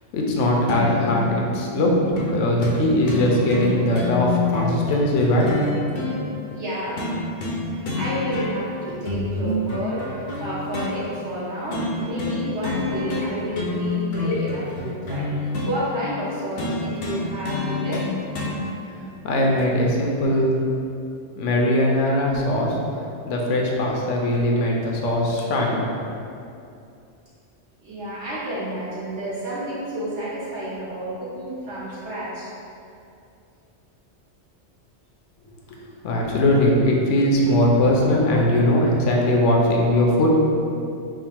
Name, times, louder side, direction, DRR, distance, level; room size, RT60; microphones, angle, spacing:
voice 1, 0.1-2.0 2.3-5.5 19.2-20.5 21.4-22.8 23.3-25.9 35.8-40.4, left 1 dB, 80° left, -1 dB, 0.9 m, -20 dB
sound 1, 0.7-1.3 2.2-2.3 2.6-2.8 3.1-6.2 7.0-7.6 7.9-8.7 9.1-10.9 11.7-11.9 12.2-12.4 12.6-13.3 13.5-15.7 16.6-18.6 19.6-19.7, left 3 dB, 60° left, 0.7 m, -27 dB
voice 2, 6.5-7.1 7.7-10.0 10.4-15.3 15.6-18.0 27.8-32.5, equal, 70° right, -9 dB, 1.4 m, -30 dB
3.5 x 2.0 x 4.3 m, 2.6 s
omnidirectional pair, 1.2 m